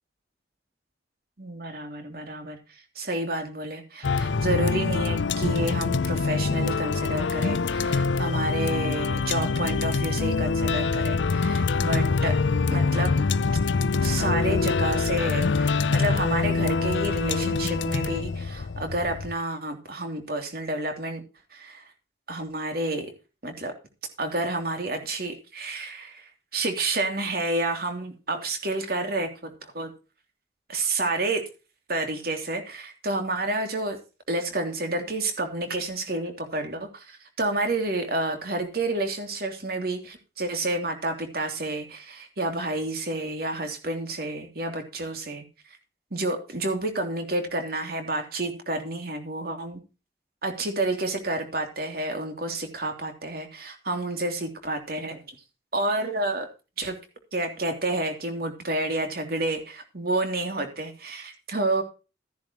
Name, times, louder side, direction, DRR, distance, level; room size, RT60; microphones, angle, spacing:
voice 1, 1.4-12.3 12.7-13.1 14.0-21.2 21.5-21.9 22.3-23.1 23.4-23.7 24.2-29.9 30.7-31.4 31.9-34.0 34.3-45.8 46.1-49.8 50.4-55.3 55.7-56.5 56.8-57.0 57.3-61.8, right 2 dB, 55° right, 5 dB, 3.1 m, -30 dB
sound 1, 4.0-19.3, left 4 dB, 85° left, 0.6 m, -25 dB
14.5 x 10.5 x 3.0 m, 0.31 s
head